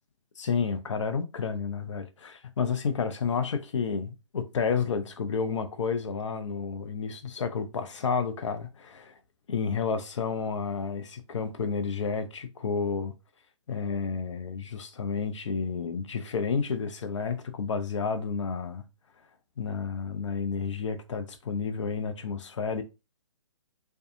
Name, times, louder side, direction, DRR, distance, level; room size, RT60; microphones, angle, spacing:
voice 1, 0.4-9.2 9.5-13.1 13.7-18.8 19.6-22.8, left 5 dB, 65° left, 0.6 m, -31 dB
2.6 x 2.3 x 2.5 m
figure-of-eight pair, 135°, 16 cm